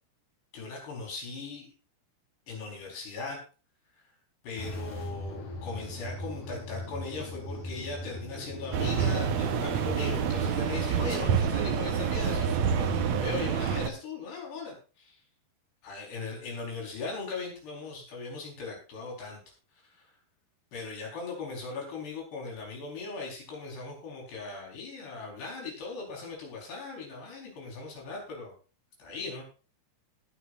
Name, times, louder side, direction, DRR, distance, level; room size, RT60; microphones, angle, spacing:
voice 1, 0.5-1.7 2.5-3.4 4.0-4.1 4.4-15.2 15.8-19.4 19.8-20.1 20.7-28.5 29.0-29.4, left 4 dB, 80° left, 0 dB, 6.7 m, -39 dB
sound 1, 4.6-13.3, left 1 dB, 50° left, 5.4 m, -39 dB
sound 2, 8.7-13.9, right 7 dB, 75° right, 1.6 m, -28 dB
18.0 x 10.5 x 2.6 m, 0.35 s
omnidirectional pair, 4.7 m